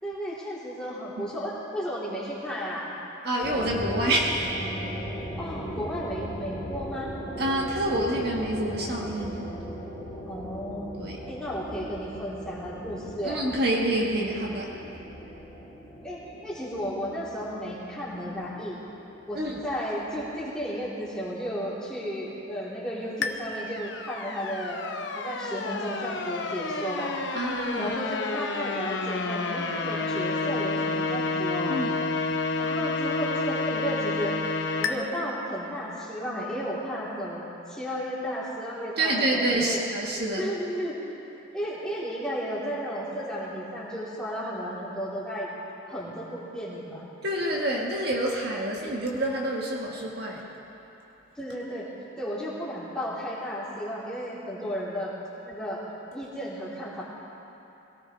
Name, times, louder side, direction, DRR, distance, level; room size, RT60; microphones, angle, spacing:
voice 1, 0.0-2.9 5.4-7.1 10.3-10.9 11.3-13.4 16.0-18.8 19.3-24.8 25.1-27.1 27.8-31.8 32.6-34.3 34.8-39.8 40.4-41.0 41.5-45.5 45.9-47.0 51.3-51.9 52.2-55.1 55.4-55.8 56.1-57.0, equal, 5° left, -9 dB, 3.3 m, -33 dB
voice 2, 3.2-4.5 7.4-9.4 11.0-11.2 13.2-14.7 19.3-19.6 27.3-28.0 31.7-32.0 39.0-40.5 47.2-50.5, right 1 dB, 50° right, -2 dB, 1.6 m, -27 dB
sound 1, 3.4-20.8, equal, 20° left, 3.8 m, -39 dB
sound 2, 23.2-34.9, left 3 dB, 65° left, 0.9 m, -30 dB
22.5 x 18.0 x 3.3 m, 3.0 s
head